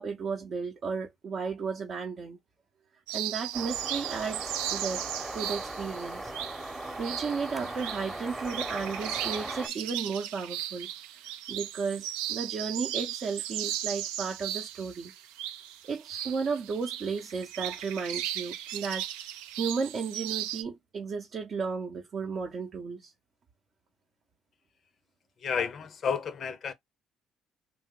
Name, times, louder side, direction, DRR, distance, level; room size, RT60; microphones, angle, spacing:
voice 1, 0.0-2.4 3.1-5.0 5.3-6.3 7.0-10.9 11.2-15.1 15.9-19.1 19.6-23.1, right 5 dB, 55° right, 0.7 m, -34 dB
sound 1, 3.1-20.6, right 12 dB, 80° right, 0.3 m, -37 dB
sound 2, 3.5-9.7, right 1 dB, 15° right, 0.8 m, -38 dB
voice 2, 25.4-26.7, left 6 dB, 55° left, 0.5 m, -31 dB
2.9 x 2.1 x 3.5 m
hypercardioid pair, 55°, 0 cm